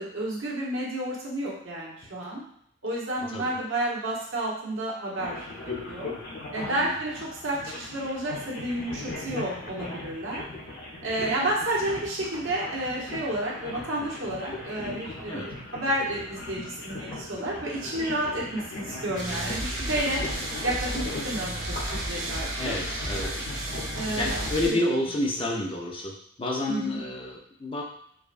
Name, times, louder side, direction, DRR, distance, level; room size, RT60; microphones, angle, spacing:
voice 1, 0.0-2.4 2.8-5.5 5.9-6.1 6.5-10.4 11.0-20.2 20.6-22.7 23.9-24.8 26.7-27.0, right 1 dB, 90° right, -4 dB, 1.1 m, -31 dB
sound 1, 5.2-24.5, left 2 dB, 50° left, 0.8 m, -39 dB
voice 2, 6.6-7.0 15.3-15.5 22.5-23.5 24.2-27.8, left 1 dB, 25° left, -1 dB, 0.5 m, -30 dB
sound 2, 19.2-24.7, right 1 dB, 45° right, 0.7 m, -33 dB
4.8 x 2.2 x 2.5 m, 0.69 s
head